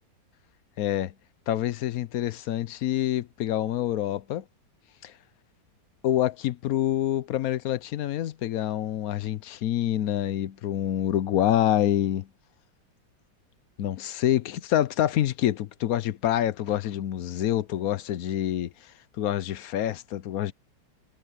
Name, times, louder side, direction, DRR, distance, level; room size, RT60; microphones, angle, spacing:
voice 1, 0.8-1.1 1.5-4.4 5.0-5.1 6.0-12.3 13.8-18.9 19.2-20.5, left 12 dB, 65° left, 0.9 m, -26 dB
omnidirectional pair, 2.0 m